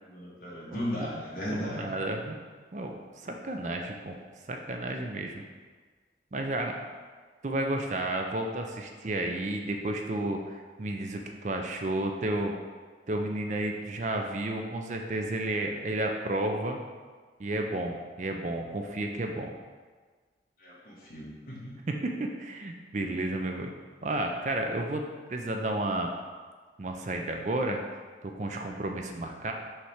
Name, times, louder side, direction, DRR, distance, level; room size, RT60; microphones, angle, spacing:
voice 1, 0.0-1.8 20.6-21.7, equal, 50° left, -7 dB, 1.9 m, -36 dB
voice 2, 0.7-1.2 1.5-2.4 2.7-3.0 3.2-4.2 4.5-5.4 6.3-6.8 7.4-12.5 13.1-16.8 17.4-19.5 21.9-23.7 24.0-25.0 25.3-26.1 26.8-27.8 28.2-29.5, right 1 dB, 40° right, 3 dB, 0.5 m, -32 dB
5.6 x 3.3 x 5.7 m, 1.4 s
head